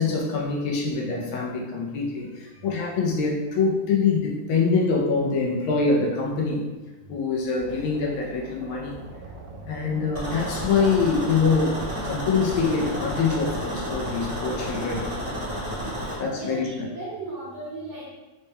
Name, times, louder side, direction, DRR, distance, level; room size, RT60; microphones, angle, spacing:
voice 1, 0.0-6.6 7.1-9.0 9.7-11.7 12.0-15.1 16.2-16.7, left 4 dB, 75° left, -2 dB, 1.3 m, -24 dB
voice 2, 2.2-2.6 16.1-18.1, right 2 dB, 60° right, -7 dB, 1.2 m, -38 dB
sound 1, 7.6-14.3, right 1 dB, 80° right, 1.4 m, -43 dB
sound 2, 10.1-16.2, equal, 35° right, 0.5 m, -31 dB
4.0 x 2.2 x 3.4 m, 1.2 s
omnidirectional pair, 2.4 m